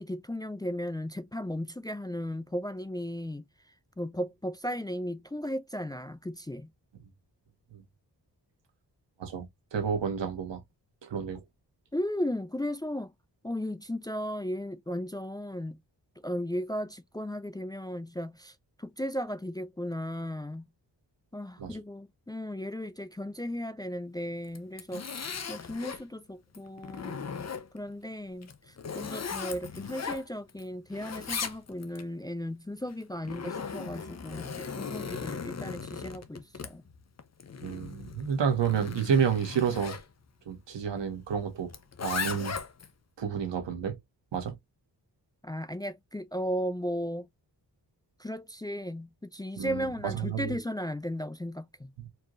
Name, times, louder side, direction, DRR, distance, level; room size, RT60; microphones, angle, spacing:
voice 1, 0.0-3.4 4.0-6.7 11.9-13.1 13.4-15.8 16.2-20.7 21.3-27.2 27.7-36.8 45.4-47.3 48.2-51.9, equal, 10° left, 0.4 m, -35 dB
voice 2, 9.7-10.6 11.0-11.4 21.6-21.8 37.6-40.0 40.5-41.7 42.0-42.6 43.2-44.0 44.3-44.5 49.6-50.5 52.0-52.1, right 7 dB, 90° right, 1.3 m, -30 dB
Zipper (clothing), 24.4-26.0 26.5-27.9 28.4-30.6 30.9-32.0 32.9-40.0 41.7-42.9, left 6 dB, 40° left, 0.7 m, -38 dB
4.5 x 3.0 x 2.5 m
wide cardioid pair, 80°, 42 cm